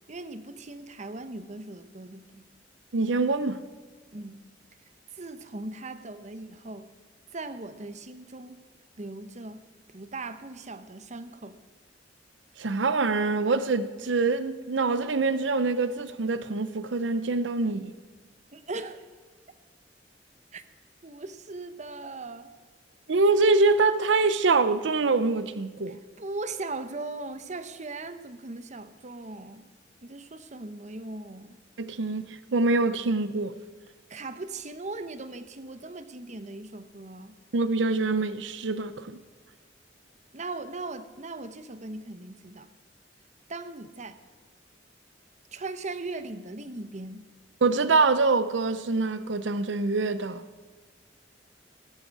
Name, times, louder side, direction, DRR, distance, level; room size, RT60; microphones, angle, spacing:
voice 1, 0.1-2.4 4.1-4.4 5.1-6.9 7.3-8.6 9.0-9.6 9.9-11.6 18.5-19.0 20.5-20.6 21.0-22.5 25.9-29.7 30.0-31.6 34.1-37.4 40.3-42.7 43.5-44.2 45.5-47.3, right 2 dB, 40° right, 0.9 m, -39 dB
voice 2, 2.9-3.6 12.6-17.9 23.1-26.0 31.8-33.5 37.5-39.1 47.6-50.4, right 3 dB, 85° right, 0.7 m, -25 dB
17.0 x 13.0 x 4.7 m
head